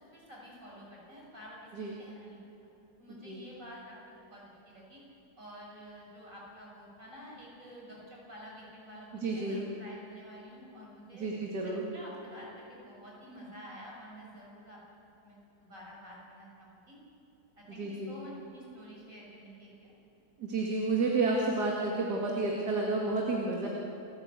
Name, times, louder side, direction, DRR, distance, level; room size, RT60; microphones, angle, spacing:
voice 1, 0.0-1.6 2.0-2.4 3.0-5.0 5.4-11.3 11.9-14.8 15.2-17.0 17.6-19.9, equal, 50° right, -3 dB, 7.3 m, -49 dB
voice 2, 9.2-9.7 11.1-11.8 17.8-18.1 20.4-23.7, right 3 dB, 70° right, -2 dB, 2.7 m, -31 dB
29.0 x 14.0 x 8.2 m, 2.8 s
omnidirectional pair, 1.8 m